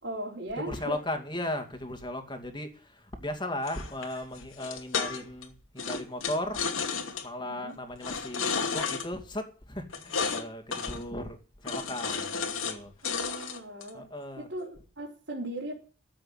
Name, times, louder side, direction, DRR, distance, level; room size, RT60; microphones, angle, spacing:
voice 1, 0.0-1.0 7.4-7.8 13.0-14.1 14.4-15.7, right 1 dB, 60° right, 4.0 m, -38 dB
voice 2, 0.6-6.6 7.2-12.9 13.9-14.5, left 1 dB, 20° left, 2.4 m, -36 dB
sound 1, 3.7-5.4 5.8-7.3 8.0-9.1 9.9-10.4 10.7-11.0 11.7-12.8 13.0-13.9, left 5 dB, 80° left, 2.5 m, -32 dB
14.0 x 7.8 x 9.1 m
head